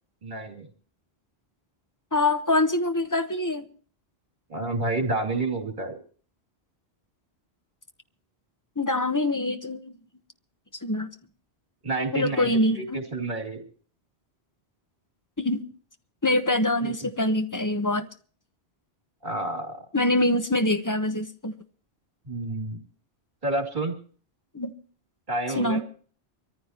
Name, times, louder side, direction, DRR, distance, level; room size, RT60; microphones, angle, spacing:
voice 1, 0.2-0.6 4.5-6.0 11.8-12.5 12.8-13.6 16.8-16.9 19.2-19.8 22.2-22.8 23.4-23.9 25.3-25.8, right 2 dB, 45° right, 2.9 m, -29 dB
voice 2, 2.1-3.7 8.8-9.9 10.8-11.1 12.1-13.0 15.4-15.6 16.2-18.0 19.9-21.5 24.5-24.7 25.6-25.8, left 1 dB, 20° left, 0.9 m, -24 dB
24.0 x 14.5 x 2.9 m
omnidirectional pair, 1.1 m